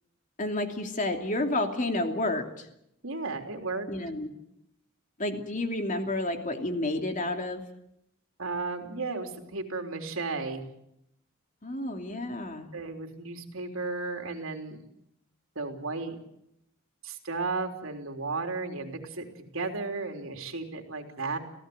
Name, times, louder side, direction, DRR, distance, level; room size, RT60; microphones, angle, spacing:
voice 1, 0.4-2.7 3.9-4.3 5.2-7.6 11.6-12.7, left 2 dB, 40° left, 4 dB, 2.9 m, -30 dB
voice 2, 3.0-3.9 8.4-10.7 12.7-14.8 15.6-16.2 17.0-19.3 19.5-21.4, right 3 dB, 80° right, 4 dB, 3.6 m, -34 dB
27.0 x 17.5 x 7.9 m, 0.78 s
head